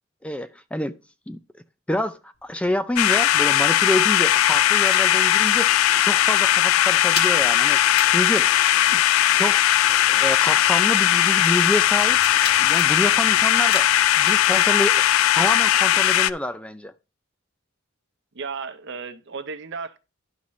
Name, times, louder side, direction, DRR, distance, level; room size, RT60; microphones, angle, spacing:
voice 1, 0.2-1.0 1.3-1.4 1.9-8.5 8.9-9.0 9.4-9.6 9.9-12.2 12.6-15.0 15.4-16.9, left 1 dB, 5° left, 0.4 m, -27 dB
sound 1, 2.3-5.7 6.0-6.2 6.5-15.9, left 4 dB, 50° left, 1.4 m, -39 dB
sound 2, 3.0-16.3, left 12 dB, 90° left, 0.3 m, -18 dB
voice 2, 18.3-20.0, right 5 dB, 60° right, 0.7 m, -34 dB
11.5 x 5.5 x 3.1 m
head